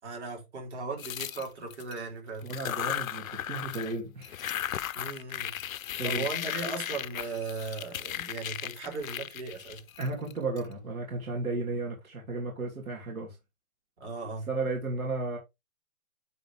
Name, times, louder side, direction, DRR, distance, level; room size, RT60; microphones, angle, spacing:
voice 1, 0.0-2.5 4.9-5.5 6.0-9.8 14.0-14.5, right 4 dB, 50° right, 4.0 m, -37 dB
sound 1, 1.0-2.0 2.4-4.0 4.2-10.6, left 11 dB, 75° left, 0.6 m, -36 dB
voice 2, 2.4-4.4 5.9-6.3 10.0-13.4 14.5-15.4, right 3 dB, 75° right, 2.9 m, -34 dB
9.9 x 4.1 x 3.5 m
hypercardioid pair, 170°, 42 cm